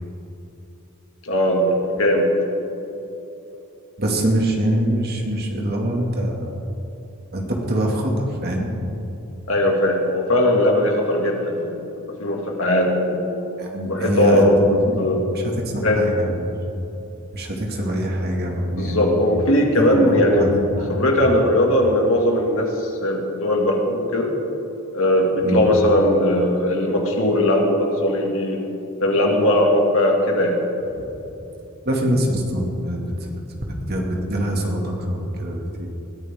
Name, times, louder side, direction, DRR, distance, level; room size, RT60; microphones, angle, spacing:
voice 1, 1.2-2.3 9.5-11.8 12.2-13.4 13.9-15.2 15.8-16.0 18.8-24.3 24.9-28.6 29.0-30.6, left 1 dB, 65° left, 0 dB, 2.5 m, -19 dB
voice 2, 4.0-6.6 7.3-8.7 13.6-15.0 15.3-16.5 17.3-19.1 19.8-21.0 25.4-25.6 31.8-33.3 33.7-35.9, right 1 dB, 45° right, 0 dB, 2.5 m, -24 dB
21.5 x 14.0 x 3.9 m, 3.0 s
head